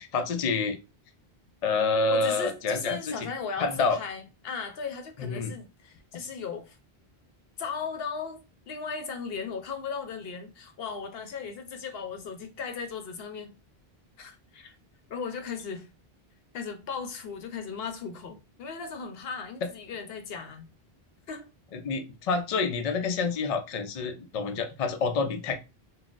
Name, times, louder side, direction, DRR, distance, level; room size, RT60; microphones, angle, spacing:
voice 1, 0.1-0.8 1.6-3.3 3.6-4.0 5.2-5.5 21.7-25.6, left 4 dB, 55° left, 0.4 m, -28 dB
voice 2, 2.1-6.8 7.6-8.4 8.7-13.5 14.2-14.7 15.1-15.9 16.5-20.6 21.3-21.5, left 5 dB, 75° left, 0.8 m, -37 dB
3.9 x 2.1 x 2.4 m
omnidirectional pair, 1.1 m